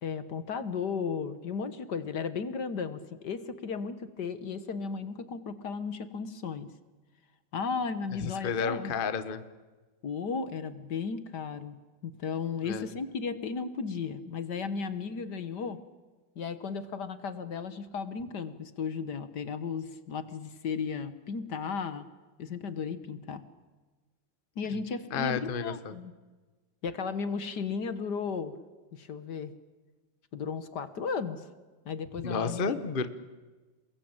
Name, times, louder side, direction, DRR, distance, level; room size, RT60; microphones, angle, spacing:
voice 1, 0.0-6.7 7.5-8.9 10.0-11.8 12.0-15.8 16.4-22.1 22.4-23.4 24.6-26.1 26.8-28.6 28.9-29.5 30.3-31.5 31.9-32.6, left 5 dB, 55° left, 12 dB, 1.8 m, -35 dB
voice 2, 8.2-9.4 12.6-12.9 24.7-24.8 25.1-25.9 32.2-33.1, left 5 dB, 30° left, 11 dB, 1.2 m, -31 dB
28.5 x 21.5 x 8.9 m, 1.3 s
omnidirectional pair, 2.2 m